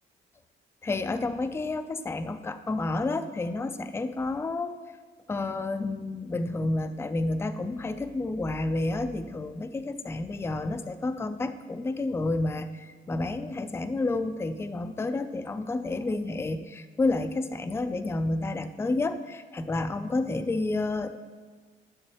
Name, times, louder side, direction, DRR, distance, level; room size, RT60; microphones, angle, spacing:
voice 1, 0.8-4.8 5.3-21.1, left 2 dB, 10° left, 9 dB, 0.4 m, -30 dB
11.0 x 6.4 x 3.0 m, 1.4 s
cardioid pair, 90°, 20 cm